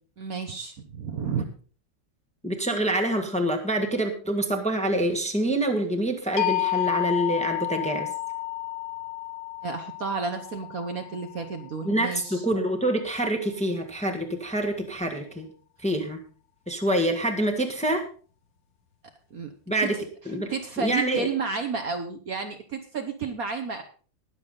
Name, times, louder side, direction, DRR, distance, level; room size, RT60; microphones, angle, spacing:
voice 1, 0.2-1.5 9.6-12.4 19.3-19.5 19.8-20.0 20.5-23.8, right 5 dB, 55° right, 6 dB, 1.3 m, -31 dB
voice 2, 2.4-8.1 11.8-15.5 15.8-16.2 16.7-18.0 19.7-20.0 20.2-20.5 20.8-21.3, right 1 dB, 5° left, 3 dB, 1.5 m, -26 dB
sound 1, 6.4-12.3, left 16 dB, 75° left, 2.0 m, -31 dB
20.0 x 7.1 x 3.9 m, 0.39 s
omnidirectional pair, 2.1 m